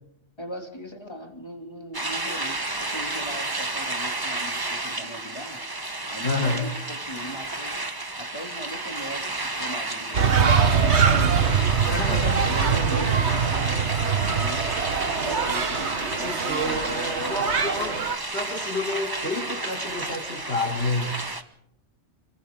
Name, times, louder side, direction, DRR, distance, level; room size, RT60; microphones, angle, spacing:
voice 1, 0.4-5.6 6.1-7.8 8.2-11.4 12.5-14.7 15.2-17.6, equal, 20° left, 4 dB, 2.8 m, -39 dB
sound 1, 1.9-21.4, right 2 dB, 20° right, 1.2 m, -31 dB
voice 2, 6.2-6.7 11.2-11.3 11.8-12.4 14.8-14.9 16.2-21.2, left 2 dB, 60° left, 2 dB, 4.0 m, -29 dB
sound 2, 10.1-18.2, right 6 dB, 70° right, 1.7 m, -23 dB
29.5 x 23.0 x 3.8 m, 0.71 s
omnidirectional pair, 1.2 m